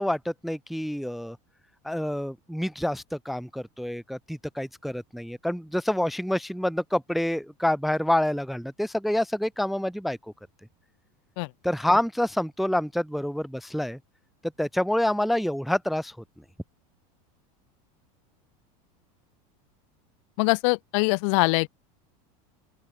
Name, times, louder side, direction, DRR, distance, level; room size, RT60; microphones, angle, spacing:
voice 1, 0.0-1.4 1.8-10.2 11.6-14.0 14.6-16.1, left 1 dB, ahead, 0.5 m, -27 dB
voice 2, 20.4-21.7, left 33 dB, 55° left, 0.8 m, -23 dB
open air
supercardioid pair, 155°, 19 cm